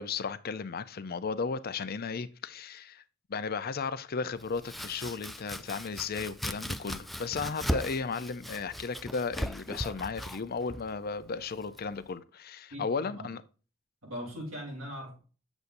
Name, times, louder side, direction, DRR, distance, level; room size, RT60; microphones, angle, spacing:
voice 1, 0.0-3.0 3.3-13.4, left 5 dB, 50° left, 0.6 m, -35 dB
Domestic sounds home sounds, 4.4-12.1, equal, ahead, 0.3 m, -38 dB
voice 2, 12.7-13.3 14.0-15.2, equal, 85° right, 3.7 m, -40 dB
8.0 x 7.1 x 2.6 m
head